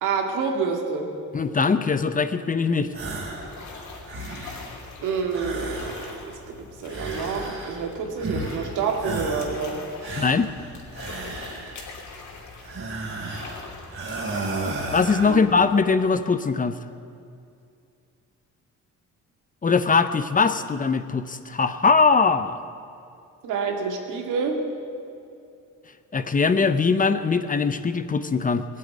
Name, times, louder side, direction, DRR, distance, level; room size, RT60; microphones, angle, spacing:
voice 1, 0.0-1.1 5.0-6.2 6.8-9.8 15.3-15.4 23.4-24.6, right 5 dB, 90° right, 2 dB, 2.1 m, -27 dB
voice 2, 1.3-2.9 10.2-10.5 14.9-16.8 19.6-22.6 26.1-28.7, left 4 dB, 25° left, 10 dB, 0.8 m, -21 dB
sound 1, 2.7-16.4, left 3 dB, 70° left, 3.0 m, -43 dB
sound 2, 2.9-3.5 3.9-4.7 5.3-6.4 6.8-7.9 8.2-8.7 9.0-9.6 10.0-11.9 12.6-13.6 13.9-15.4, right 2 dB, 45° right, 3.4 m, -33 dB
18.5 x 7.8 x 9.2 m, 2.5 s
cardioid pair, 90°, 30 cm